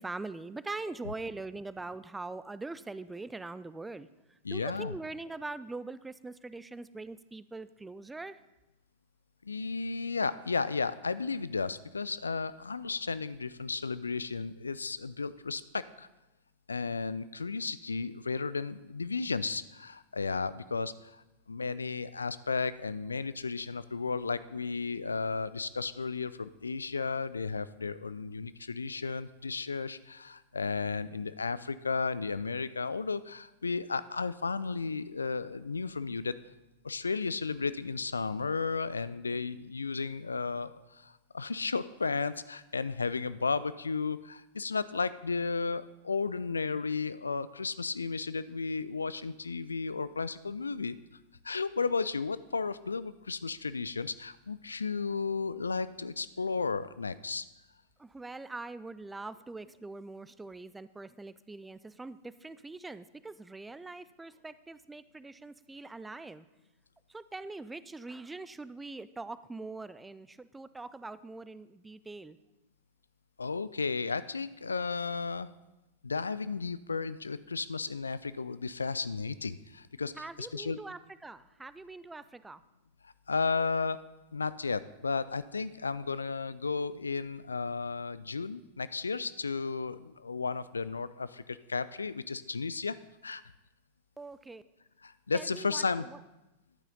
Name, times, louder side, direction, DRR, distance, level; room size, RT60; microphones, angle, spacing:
voice 1, 0.0-8.4 58.0-66.5 67.1-72.4 80.2-82.6 94.2-94.6 95.3-96.2, right 3 dB, 10° right, 15 dB, 0.3 m, -43 dB
voice 2, 4.4-4.9 9.4-16.1 16.7-21.2 21.5-36.4 36.8-51.0 51.4-57.5 73.4-75.5 76.0-80.8 83.0-84.0 84.3-93.0 93.2-93.4 95.0-96.1, left 4 dB, 75° left, 16 dB, 0.3 m, -34 dB
11.5 x 8.8 x 3.9 m, 0.99 s
figure-of-eight pair, 90°, 0 cm